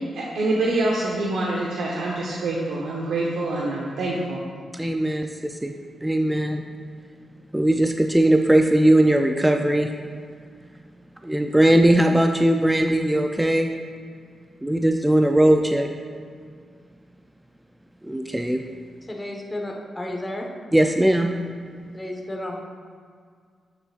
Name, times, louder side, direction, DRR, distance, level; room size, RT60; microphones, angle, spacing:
voice 1, 0.1-4.4, right 2 dB, 85° right, -3 dB, 0.9 m, -25 dB
voice 2, 4.7-5.7 6.0-6.6 7.5-9.9 11.2-13.7 14.6-15.9 18.0-18.6 20.7-21.4, right 1 dB, 10° right, 4 dB, 0.4 m, -19 dB
voice 3, 19.1-20.5 21.9-22.6, left 1 dB, 15° left, 0 dB, 1.2 m, -32 dB
12.0 x 6.8 x 2.4 m, 2.1 s
cardioid pair, 105°, 0 cm